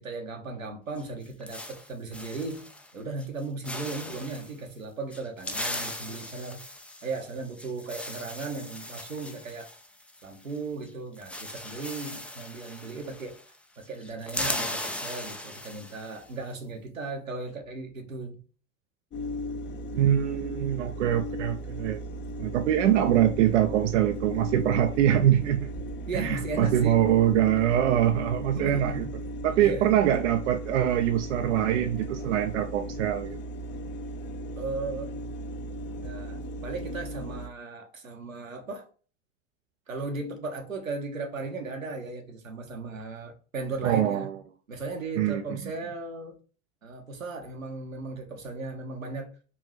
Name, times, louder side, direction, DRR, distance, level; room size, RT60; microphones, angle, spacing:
voice 1, 0.0-2.7 2.9-6.7 7.0-9.7 10.2-13.4 13.8-18.4 26.1-27.0 28.5-29.2 29.5-29.9 34.6-35.2 36.0-38.9 39.9-44.3 44.7-46.4 46.8-49.3, right 3 dB, 85° right, 1.1 m, -36 dB
sound 1, 1.0-2.9 3.2-3.4 3.6-4.5 5.1-10.6 10.8-10.9 11.2-13.6 13.8-16.2, left 1 dB, 5° left, 0.4 m, -38 dB
sound 2, 19.1-37.5, equal, 30° left, 0.7 m, -36 dB
voice 2, 19.9-22.0 22.4-25.7 26.1-29.0 29.4-33.4 43.8-44.4 45.2-45.6, right 11 dB, 65° right, 0.5 m, -24 dB
4.5 x 3.0 x 3.0 m
figure-of-eight pair, 80°, 39 cm